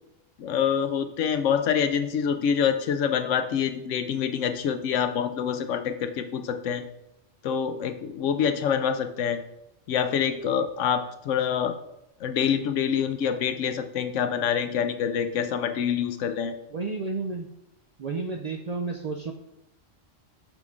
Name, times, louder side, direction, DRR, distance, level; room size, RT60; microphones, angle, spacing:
voice 1, 0.4-6.8 7.4-9.4 9.9-11.7 12.2-16.5, left 8 dB, 85° left, 9 dB, 1.0 m, -26 dB
voice 2, 16.7-17.5 18.0-19.3, right 4 dB, 60° right, 3 dB, 0.4 m, -31 dB
6.3 x 4.7 x 3.7 m, 0.86 s
omnidirectional pair, 1.2 m